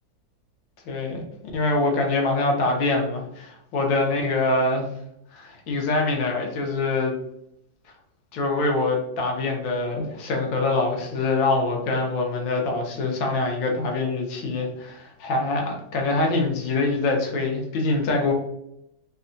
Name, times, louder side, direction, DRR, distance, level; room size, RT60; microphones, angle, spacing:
voice 1, 0.9-1.2 1.5-4.9 5.3-7.1 8.3-18.3, left 2 dB, 80° left, 1 dB, 1.4 m, -24 dB
3.5 x 2.2 x 2.5 m, 0.79 s
omnidirectional pair, 2.1 m